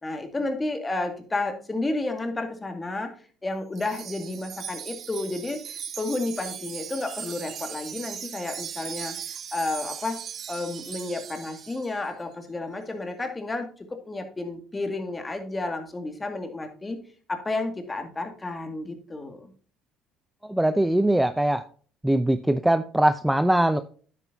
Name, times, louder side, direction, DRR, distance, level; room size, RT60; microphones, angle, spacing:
voice 1, 0.0-3.1 3.4-9.2 9.5-10.2 10.5-17.0 17.3-19.5, left 2 dB, 20° left, 6 dB, 2.1 m, -31 dB
Wind chime, 3.8-12.0, right 8 dB, 55° right, 0.8 m, -38 dB
voice 2, 20.4-21.6 22.0-23.8, right 1 dB, 5° right, 11 dB, 0.6 m, -21 dB
9.8 x 8.4 x 2.7 m, 0.42 s
supercardioid pair, 70°, 0 cm